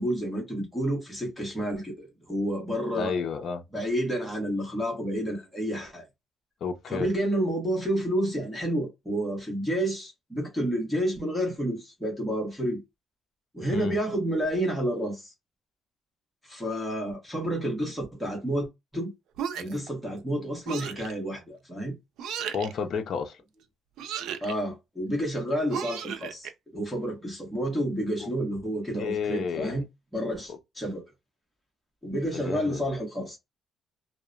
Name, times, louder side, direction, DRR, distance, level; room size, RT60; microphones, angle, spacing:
voice 1, 0.0-3.1 3.7-6.0 6.9-12.8 13.5-15.3 16.5-18.7 18.9-19.1 19.6-22.0 24.4-29.8 30.1-31.0 32.0-33.4, right 1 dB, ahead, 1.1 m, -30 dB
voice 2, 2.9-3.6 6.6-7.1 13.7-14.0 22.5-23.4 28.2-28.3 29.0-29.8 30.5-30.6 32.3-32.8, left 6 dB, 50° left, 0.5 m, -31 dB
sound 1, 19.4-19.9 20.7-21.1 22.2-22.7 24.0-24.5 25.7-26.5, right 8 dB, 85° right, 0.4 m, -34 dB
2.8 x 2.0 x 2.3 m
cardioid pair, 170°, 0 cm